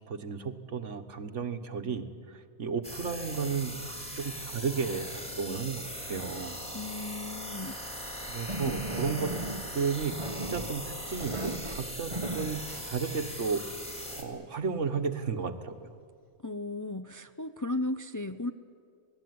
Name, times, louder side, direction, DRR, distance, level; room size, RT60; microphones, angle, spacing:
voice 1, 0.1-6.6 8.3-9.3 9.7-13.6 14.2-15.9, right 5 dB, 80° right, 9 dB, 1.7 m, -33 dB
sound 1, 2.8-14.2, equal, 5° left, 3.1 m, -40 dB
voice 2, 6.7-7.8 8.1-8.8 16.4-18.5, left 2 dB, 20° left, 9 dB, 0.5 m, -36 dB
sound 2, 7.9-13.5, right 2 dB, 25° right, 1.2 m, -37 dB
27.5 x 18.5 x 9.5 m, 2.2 s
omnidirectional pair, 1.2 m